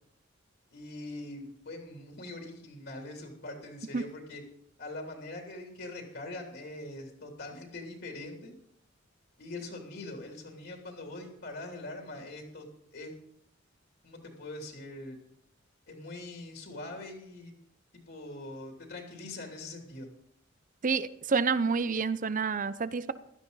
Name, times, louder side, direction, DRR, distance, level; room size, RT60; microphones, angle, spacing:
voice 1, 0.7-4.4 4.8-8.5 9.4-12.7 12.9-13.1 14.0-15.2 15.9-17.5 18.1-20.1, left 2 dB, 60° left, 2 dB, 3.0 m, -42 dB
voice 2, 20.8-23.1, right 5 dB, 45° right, 15 dB, 0.7 m, -28 dB
16.5 x 12.5 x 4.0 m, 0.72 s
head